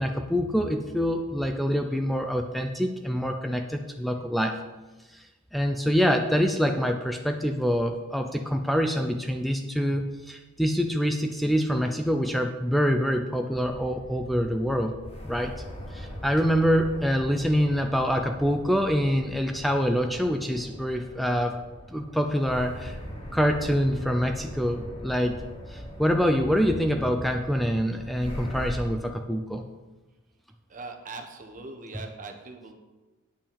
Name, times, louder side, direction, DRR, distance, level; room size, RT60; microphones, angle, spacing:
voice 1, 0.0-4.6 5.1-5.2 5.5-14.9 15.2-15.5 15.9-21.6 21.9-23.0 23.3-25.4 25.7-29.6, equal, ahead, 5 dB, 0.4 m, -25 dB
sound 1, 13.5-28.8, equal, 25° left, 1.8 m, -41 dB
voice 2, 30.7-32.7, right 3 dB, 35° right, 4 dB, 1.2 m, -41 dB
9.0 x 5.4 x 7.1 m, 1.2 s
head